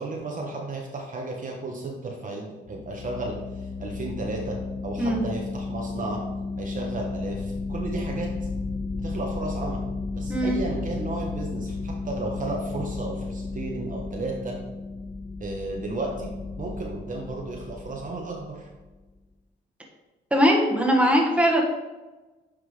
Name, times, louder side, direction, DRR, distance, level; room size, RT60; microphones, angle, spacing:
voice 1, 0.0-3.3 3.8-4.6 4.8-6.2 6.6-8.3 9.0-9.8 10.1-14.5 15.4-16.3 16.6-18.7, right 2 dB, 40° right, -1 dB, 1.1 m, -33 dB
sound 1, 2.7-18.9, left 3 dB, 35° left, 0.5 m, -33 dB
voice 2, 20.3-21.6, equal, 5° right, -1 dB, 1.4 m, -20 dB
9.6 x 3.4 x 3.3 m, 1.2 s
cardioid pair, 90°, 20 cm